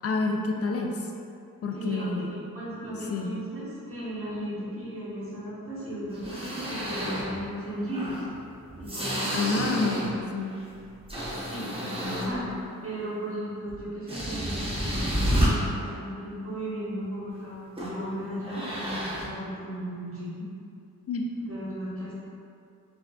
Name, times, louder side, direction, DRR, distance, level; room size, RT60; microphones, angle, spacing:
voice 1, 0.0-1.0 1.6-2.4 3.1-3.3 9.3-10.5 21.1-21.2, left 3 dB, 40° left, 2 dB, 0.4 m, -28 dB
voice 2, 1.7-8.2 8.8-9.6 10.0-10.2 11.5-20.4 21.4-22.1, equal, 40° right, -8 dB, 1.3 m, -36 dB
sound 1, 6.1-7.4 7.9-10.2 10.6-12.5 13.7-13.8 14.1-15.5 17.8-18.0 18.4-19.3, equal, 15° right, 0.9 m, -30 dB
3.3 x 2.5 x 2.3 m, 2.5 s
cardioid pair, 40°, 36 cm